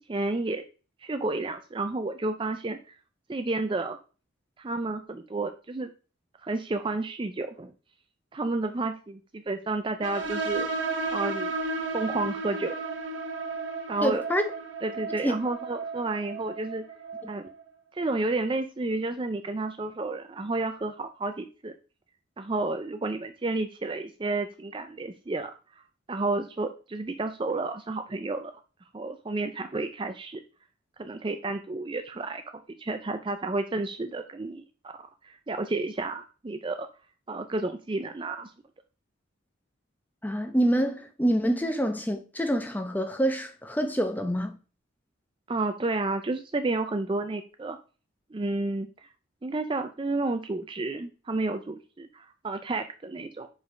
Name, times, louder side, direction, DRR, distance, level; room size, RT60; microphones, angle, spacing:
voice 1, 0.1-0.6 1.0-2.8 3.3-4.0 4.6-5.9 6.4-7.7 8.3-10.7 11.1-12.8 13.9-14.2 14.8-16.8 17.3-17.5 17.9-21.7 22.4-25.5 25.8-25.9 26.1-28.5 28.9-30.4 31.0-32.4 32.8-34.9 35.2-36.9 37.3-38.5 45.5-47.8 48.3-49.1 49.4-53.5, right 2 dB, 25° right, 0.4 m, -31 dB
sound 1, 10.0-17.3, right 3 dB, 65° right, 0.9 m, -33 dB
voice 2, 14.0-14.5 15.2-15.3 40.2-44.6, equal, 10° left, 0.8 m, -26 dB
5.2 x 4.8 x 5.0 m
head